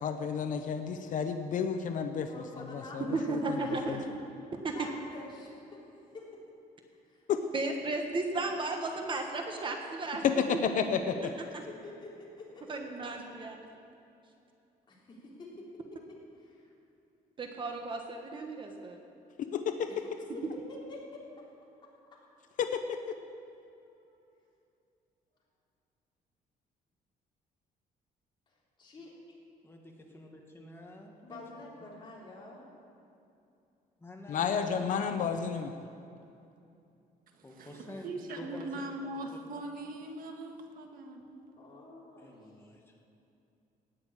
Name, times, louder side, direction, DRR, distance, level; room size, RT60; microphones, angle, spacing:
voice 1, 0.0-2.3 2.7-3.6 3.9-4.0 7.3-7.4 10.2-11.2 19.4-20.0 22.6-23.2 34.3-35.7, left 7 dB, 55° left, 7 dB, 0.7 m, -31 dB
voice 2, 2.3-3.8 4.7-5.8 6.1-6.3 7.1-7.3 11.5-12.7 13.0-13.1 14.9-15.7 16.4-16.7 19.9-21.2 23.8-24.3 28.8-29.1 31.2-32.7 41.6-42.4, left 2 dB, 30° left, -5 dB, 3.7 m, -48 dB
voice 3, 3.1-4.1 4.6-4.9 7.5-10.4 11.5-11.6 12.7-13.6 17.4-19.0, right 3 dB, 30° right, 3 dB, 1.3 m, -34 dB
voice 4, 29.6-31.9 34.0-35.4 37.4-38.8 42.2-43.0, left 1 dB, 15° left, 1 dB, 1.7 m, -49 dB
voice 5, 37.3-41.6, right 2 dB, 65° right, 3 dB, 1.6 m, -41 dB
17.5 x 6.4 x 8.7 m, 2.7 s
cardioid pair, 150°, 16 cm